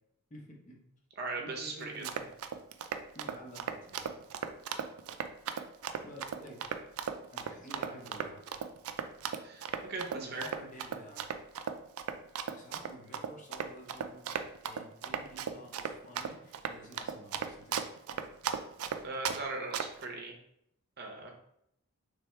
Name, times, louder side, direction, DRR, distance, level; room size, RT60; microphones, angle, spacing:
voice 1, 0.3-0.8 1.4-2.3 3.1-4.0 6.0-6.6 7.3-8.4 10.1-11.3 12.5-14.4 14.6-17.8, equal, 35° left, -1 dB, 0.9 m, -50 dB
voice 2, 1.2-2.0 9.4-10.5 19.0-20.3 21.0-21.3, right 3 dB, 45° right, 1 dB, 0.7 m, -39 dB
Run, 1.8-19.4 19.7-20.1, right 7 dB, 85° right, 0.4 m, -36 dB
3.4 x 3.3 x 4.5 m, 0.76 s
head